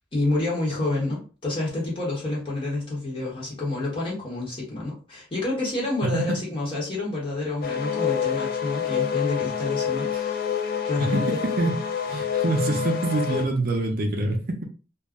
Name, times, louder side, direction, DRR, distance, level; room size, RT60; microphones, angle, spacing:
voice 1, 0.1-10.5 10.8-11.4, left 2 dB, 25° left, 0.9 m, -28 dB
voice 2, 6.0-6.4 11.0-11.8 12.1-14.6, right 2 dB, 50° right, 0.5 m, -25 dB
sound 1, 7.6-13.5, left 8 dB, 45° left, 0.3 m, -27 dB
2.3 x 2.0 x 3.5 m
head